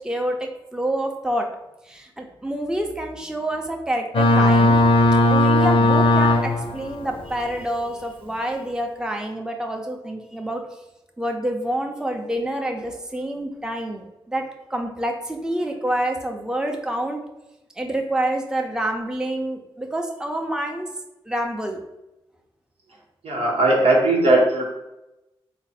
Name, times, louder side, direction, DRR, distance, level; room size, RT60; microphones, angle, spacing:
voice 1, 0.0-1.5 1.8-4.8 5.3-10.6 11.2-17.2 17.8-20.9 21.3-21.8, right 1 dB, 5° right, 2 dB, 0.6 m, -27 dB
Boat Water vehicle, 4.1-6.8, left 2 dB, 60° left, 0.5 m, -16 dB
voice 2, 23.2-24.7, right 2 dB, 85° right, -3 dB, 1.0 m, -18 dB
3.3 x 2.0 x 4.1 m, 0.92 s
cardioid pair, 50°, 10 cm